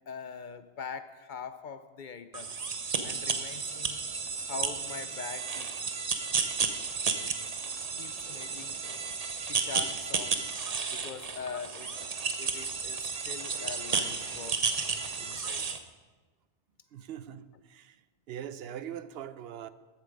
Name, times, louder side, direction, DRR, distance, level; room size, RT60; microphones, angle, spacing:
voice 1, 0.1-2.7 3.0-4.0 4.5-6.0 6.4-6.5 8.0-8.8 9.5-10.5 10.9-12.0 12.4-14.8 15.2-15.7, left 6 dB, 55° left, 12 dB, 0.7 m, -43 dB
sound 1, 2.3-15.8, right 5 dB, 40° right, 0.8 m, -33 dB
voice 2, 16.9-18.0 18.3-19.7, right 9 dB, 75° right, 14 dB, 0.8 m, -42 dB
14.0 x 8.1 x 5.2 m, 1.3 s
omnidirectional pair, 1.0 m